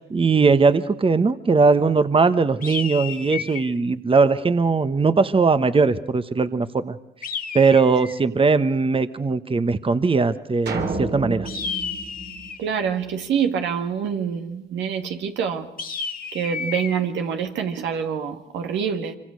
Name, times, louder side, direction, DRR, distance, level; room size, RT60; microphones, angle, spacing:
voice 1, 0.0-7.0 7.5-11.5, right 4 dB, 30° right, 12 dB, 1.1 m, -19 dB
sound 1, 2.6-3.8 7.2-8.2 11.4-12.7 15.8-17.0, left 6 dB, 50° left, 1.7 m, -32 dB
sound 2, 10.7-13.1, right 3 dB, 65° right, 3.5 m, -30 dB
voice 2, 12.6-15.7 16.3-19.1, right 7 dB, 85° right, 5 dB, 1.9 m, -26 dB
25.0 x 24.5 x 6.4 m, 0.75 s
supercardioid pair, 65°, 18 cm